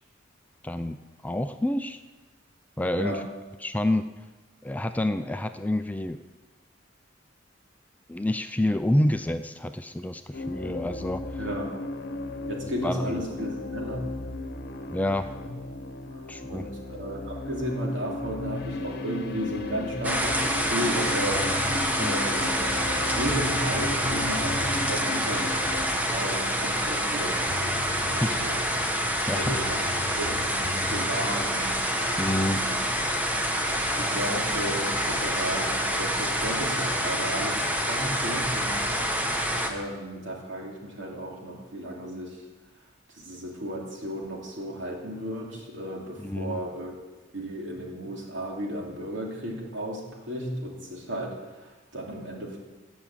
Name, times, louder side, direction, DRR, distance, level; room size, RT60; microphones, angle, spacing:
voice 1, 0.6-2.0 2.8-3.2 3.6-4.1 4.6-6.2 8.1-11.2 12.8-13.0 14.9-15.3 16.3-16.6 22.0-22.2 28.2-28.4 28.9-29.6 32.2-32.6 46.2-46.6, left 1 dB, 10° left, 8 dB, 0.4 m, -28 dB
sound 1, 10.3-25.9, left 2 dB, 55° left, 1.0 m, -35 dB
voice 2, 11.4-11.8 12.5-14.0 16.1-21.5 22.0-22.6 23.1-25.7 26.1-28.6 29.3-32.9 33.6-38.9 39.6-42.4 43.1-47.0 47.3-52.6, equal, 70° right, -1 dB, 2.9 m, -34 dB
sound 2, 20.0-39.7, equal, 10° right, 1.1 m, -27 dB
sound 3, 21.3-21.9 22.9-23.0 23.3-25.0 27.1-27.2 27.5-28.7 29.4-31.1, left 3 dB, 80° left, 0.7 m, -39 dB
17.5 x 6.2 x 7.3 m, 1.2 s
head